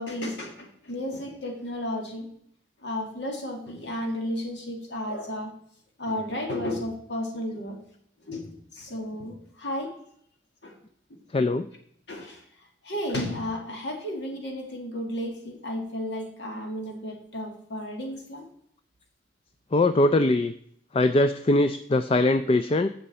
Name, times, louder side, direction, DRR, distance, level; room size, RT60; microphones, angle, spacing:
voice 1, 0.0-2.3 2.8-5.5 6.0-7.8 8.2-10.0 10.6-10.8 11.1-11.2 12.1-12.4 12.8-18.5, left 1 dB, 70° left, 2 dB, 2.1 m, -33 dB
voice 2, 11.3-11.7 19.7-20.5 20.9-22.9, left 2 dB, 30° left, 11 dB, 0.4 m, -21 dB
16.5 x 5.7 x 4.2 m, 0.69 s
head